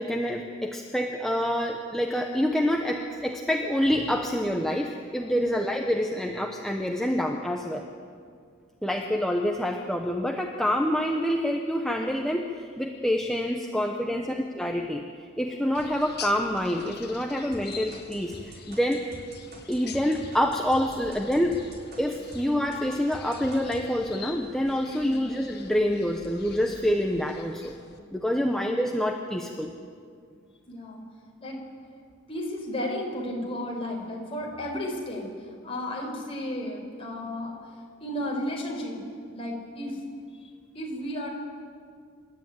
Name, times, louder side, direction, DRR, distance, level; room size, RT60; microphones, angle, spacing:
voice 1, 0.0-7.8 8.8-15.0 15.4-18.3 18.7-19.0 19.7-21.6 22.0-27.7 28.1-29.7, equal, ahead, 1 dB, 1.0 m, -27 dB
sound 1, 15.7-28.0, left 6 dB, 50° left, 1.7 m, -45 dB
sound 2, 17.5-22.4 22.7-23.8, right 1 dB, 45° right, 4.0 m, -45 dB
voice 2, 30.7-31.0 31.4-31.6 32.3-35.3 35.6-37.5 38.0-39.0 39.3-40.0 40.4-40.5 40.7-41.3, left 1 dB, 25° left, -1 dB, 5.2 m, -33 dB
27.5 x 13.0 x 9.3 m, 2.2 s
head